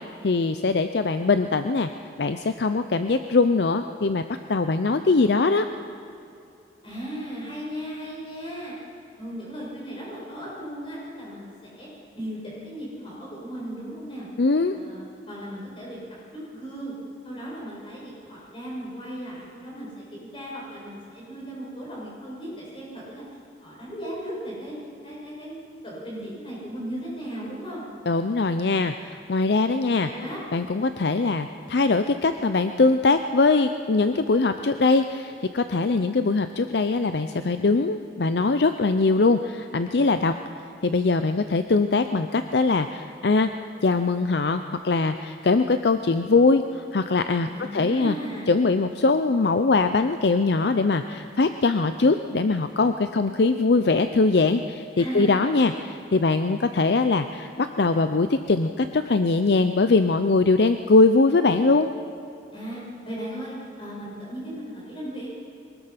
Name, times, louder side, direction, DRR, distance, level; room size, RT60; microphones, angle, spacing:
voice 1, 0.2-1.9 2.2-5.7 14.4-14.8 28.1-30.1 30.5-40.4 40.8-43.5 43.8-48.2 48.5-61.9, left 3 dB, 65° left, 9 dB, 0.6 m, -22 dB
voice 2, 6.8-8.7 9.2-11.9 12.1-14.3 14.7-16.0 16.3-16.9 17.2-23.2 23.6-24.7 25.0-25.6 25.8-27.8 29.6-30.4 47.4-48.6 55.0-55.4 62.5-62.8 63.0-65.3, equal, 30° left, -5 dB, 7.2 m, -36 dB
23.0 x 20.0 x 5.9 m, 2.6 s
head